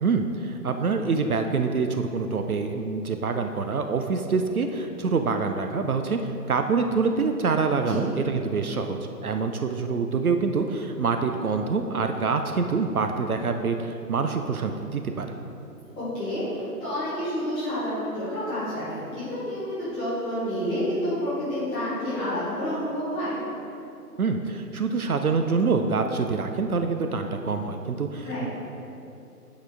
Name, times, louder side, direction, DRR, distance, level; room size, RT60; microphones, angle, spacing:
voice 1, 0.0-15.3 24.2-28.5, right 4 dB, 65° right, 6 dB, 0.6 m, -26 dB
voice 2, 16.0-23.4 28.2-28.5, equal, 5° left, -15 dB, 0.9 m, -29 dB
8.4 x 5.0 x 3.4 m, 2.8 s
figure-of-eight pair, 140°, 48 cm